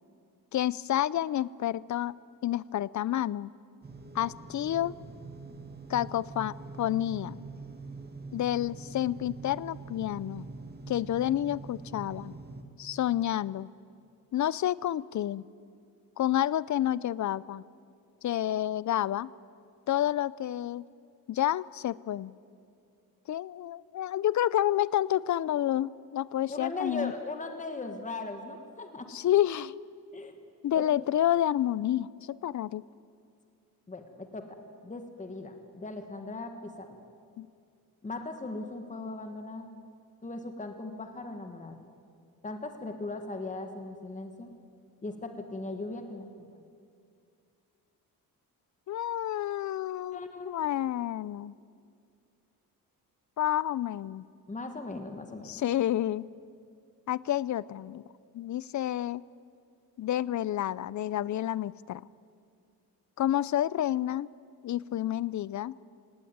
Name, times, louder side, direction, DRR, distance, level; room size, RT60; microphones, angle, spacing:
voice 1, 0.5-2.1 2.4-3.5 4.1-4.9 5.9-7.4 8.3-10.5 10.9-12.3 12.8-13.7 14.3-15.4 16.2-17.6 18.2-19.3 19.9-20.9 21.3-22.3 23.3-27.1 29.1-29.8 30.6-32.8 37.4-37.5 48.9-51.5 53.4-54.2 55.4-56.3 57.1-58.0 58.3-59.2 60.0-62.0 63.2-64.3 64.6-65.7, left 12 dB, 55° left, 21 dB, 0.5 m, -29 dB
sound 1, 3.8-12.6, right 3 dB, 25° right, 1.9 m, -44 dB
voice 2, 26.5-29.1 30.1-30.4 30.7-30.8 33.9-34.6 34.8-37.0 38.0-39.7 40.2-41.8 42.4-44.5 45.0-46.3 50.1-50.5 54.5-55.5, left 2 dB, 20° left, 6 dB, 1.6 m, -38 dB
18.0 x 18.0 x 9.3 m, 2.4 s
cardioid pair, 120°, 36 cm